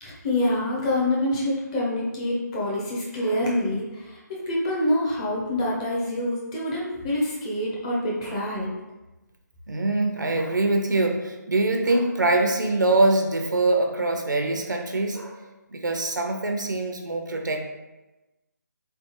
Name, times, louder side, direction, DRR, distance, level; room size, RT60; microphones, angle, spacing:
voice 1, 0.0-4.2 4.5-8.7, left 1 dB, 20° left, -4 dB, 0.7 m, -26 dB
voice 2, 9.7-17.7, right 2 dB, 85° right, 3 dB, 0.7 m, -24 dB
3.8 x 3.4 x 3.0 m, 1.1 s
figure-of-eight pair, 160°, 10 cm